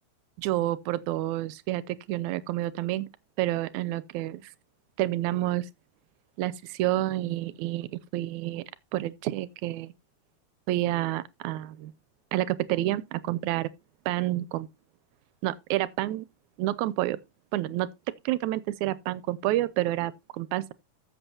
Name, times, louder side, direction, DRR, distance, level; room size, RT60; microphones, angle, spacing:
voice 1, 0.4-3.1 3.4-4.5 5.0-5.7 6.4-8.6 8.9-9.9 10.7-11.9 12.3-13.7 14.1-14.7 15.4-16.3 16.6-17.2 17.5-17.9 18.3-20.7, right 15 dB, 80° right, 2.0 m, -29 dB
13.5 x 7.7 x 2.8 m
omnidirectional pair, 3.4 m